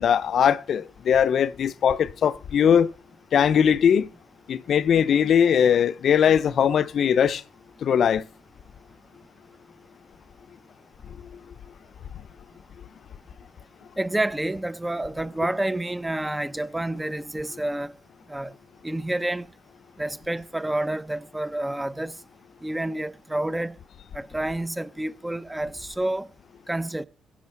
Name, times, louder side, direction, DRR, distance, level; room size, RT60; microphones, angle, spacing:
voice 1, 0.0-2.9 3.3-4.1 4.5-7.4 7.8-8.3, left 8 dB, 60° left, 0.6 m, -20 dB
voice 2, 14.0-17.9 18.3-18.5 18.8-19.5 20.0-22.1 22.6-23.8 24.1-26.3 26.7-27.0, right 1 dB, 10° right, 0.7 m, -29 dB
16.5 x 6.4 x 7.5 m
cardioid pair, 90°, 0 cm